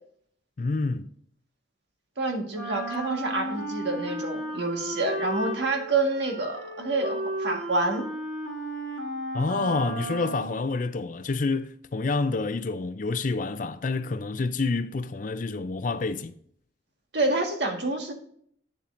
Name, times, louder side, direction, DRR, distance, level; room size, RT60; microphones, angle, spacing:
voice 1, 0.6-1.1 9.3-16.4, left 3 dB, 40° left, 0.4 m, -28 dB
voice 2, 2.2-8.0 17.1-18.1, right 2 dB, 60° right, 1.6 m, -28 dB
Wind instrument woodwind instrument, 2.5-10.7, right 1 dB, 75° right, 1.8 m, -34 dB
8.5 x 7.2 x 2.6 m
head